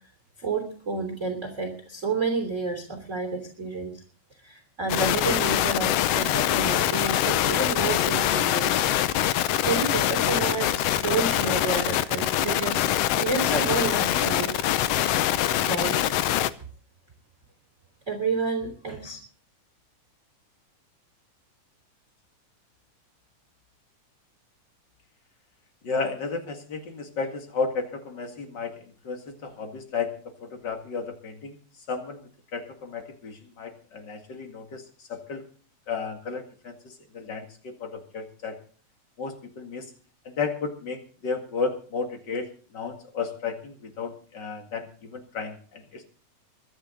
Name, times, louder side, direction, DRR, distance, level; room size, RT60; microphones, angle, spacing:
voice 1, 0.4-4.0 4.4-8.7 9.6-14.5 15.6-16.4 18.1-19.2, right 4 dB, 20° right, 3 dB, 3.3 m, -30 dB
sound 1, 4.9-16.5, left 12 dB, 85° left, 1.3 m, -24 dB
voice 2, 25.8-28.7 29.0-31.6 31.9-32.2 32.5-34.8 35.1-35.4 35.9-38.6 39.2-39.9 40.2-42.5 42.7-46.1, left 4 dB, 35° left, 4 dB, 2.3 m, -33 dB
23.5 x 10.5 x 3.9 m, 0.43 s
omnidirectional pair, 3.7 m